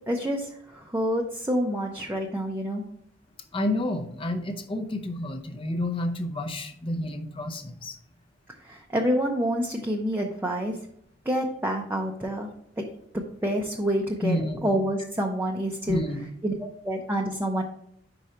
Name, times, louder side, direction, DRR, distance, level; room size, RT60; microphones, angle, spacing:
voice 1, 0.1-2.8 8.6-10.8 11.3-12.5 12.8-12.9 13.1-16.0 16.4-17.6, equal, 10° right, 0 dB, 0.6 m, -28 dB
voice 2, 3.5-8.0 14.2-14.8 15.9-16.2, left 1 dB, 30° left, 6 dB, 0.6 m, -30 dB
5.3 x 5.1 x 4.3 m, 0.71 s
head